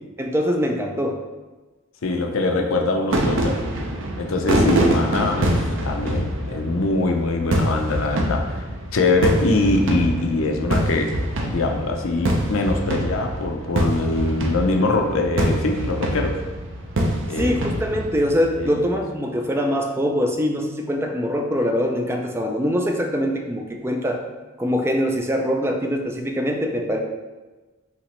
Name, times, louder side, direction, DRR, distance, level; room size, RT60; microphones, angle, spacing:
voice 1, 0.2-1.2 17.4-24.2 24.6-27.0, equal, 10° right, 2 dB, 0.4 m, -23 dB
voice 2, 2.0-3.6 4.2-8.6 8.9-11.1 11.4-16.4 17.3-17.5 18.6-19.0, left 2 dB, 70° left, 3 dB, 0.6 m, -23 dB
sound 1, 3.1-18.8, right 1 dB, 65° right, 0.7 m, -25 dB
5.8 x 2.9 x 3.1 m, 1.2 s
head